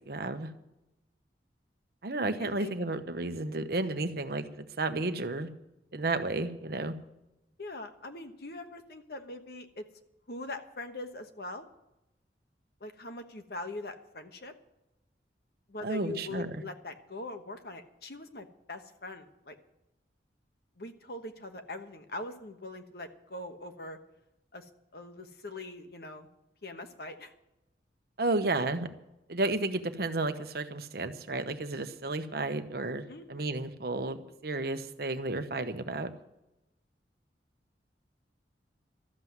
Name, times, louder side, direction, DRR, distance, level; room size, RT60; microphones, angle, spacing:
voice 1, 0.1-0.5 2.0-5.5 5.9-6.9 15.8-16.6 28.2-28.9 29.3-36.1, right 2 dB, 60° right, 8 dB, 1.0 m, -32 dB
voice 2, 2.4-2.7 7.6-9.8 10.3-11.7 12.8-14.5 15.7-19.5 20.8-24.0 24.5-24.6 24.9-26.3 26.6-27.3 33.1-33.5, left 2 dB, 60° left, 7 dB, 1.2 m, -42 dB
13.0 x 7.6 x 9.6 m, 0.92 s
head